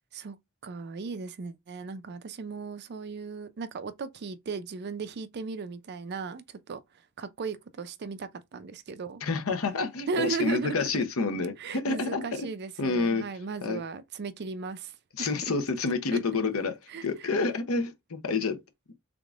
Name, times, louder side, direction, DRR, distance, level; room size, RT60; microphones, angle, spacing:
voice 1, 0.6-6.8 7.2-9.2 10.1-11.1 11.6-15.5 16.1-16.2 16.9-17.3, right 4 dB, 50° right, 0.5 m, -36 dB
voice 2, 9.2-12.4 12.8-13.2 13.6-13.8 15.2-16.7 17.0-18.6, left 4 dB, 75° left, 0.8 m, -28 dB
3.6 x 3.5 x 2.4 m
head